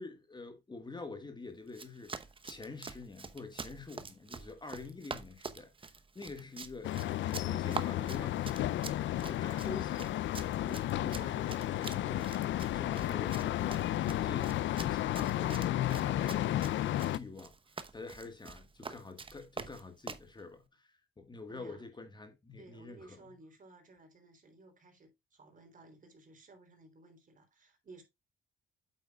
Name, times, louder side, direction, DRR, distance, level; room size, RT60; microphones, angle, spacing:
voice 1, 0.0-2.1 2.4-6.9 7.2-10.2 10.6-12.3 12.7-16.8 17.1-17.6 17.9-23.3, left 3 dB, 20° left, 1.5 m, -47 dB
Run, 1.7-20.3, right 4 dB, 25° right, 0.9 m, -46 dB
sound 1, 6.8-17.2, left 13 dB, 70° left, 0.5 m, -33 dB
voice 2, 21.5-21.8 22.6-28.0, right 2 dB, 40° right, 3.4 m, -57 dB
8.5 x 8.0 x 2.3 m
cardioid pair, 90°, 20 cm